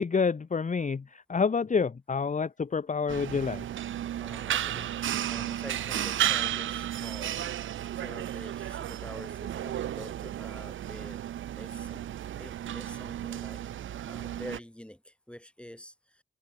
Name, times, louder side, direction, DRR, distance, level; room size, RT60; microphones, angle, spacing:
voice 1, 0.0-3.6, left 5 dB, 40° left, 0.8 m, -28 dB
sound 1, 3.1-14.6, right 11 dB, 90° right, 0.4 m, -33 dB
voice 2, 4.2-5.0 5.3-7.5 8.0-11.2 11.6-12.0 12.4-13.6 14.1-16.2, equal, 5° left, 4.4 m, -46 dB
cardioid pair, 65°, 20 cm